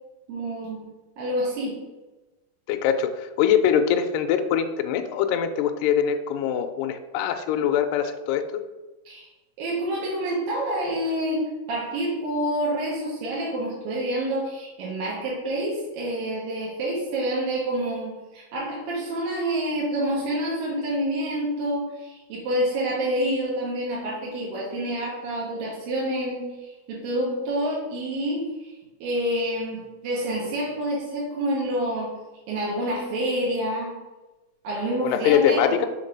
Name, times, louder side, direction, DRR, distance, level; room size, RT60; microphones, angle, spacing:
voice 1, 0.3-0.8 1.2-1.8 9.1-9.3 9.6-28.7 29.0-32.2 32.5-33.9 34.6-35.8, right 1 dB, 75° right, -5 dB, 2.9 m, -28 dB
voice 2, 2.7-8.6 35.0-35.9, left 8 dB, 80° left, 6 dB, 2.1 m, -23 dB
6.6 x 3.6 x 5.2 m, 1.1 s
omnidirectional pair, 4.2 m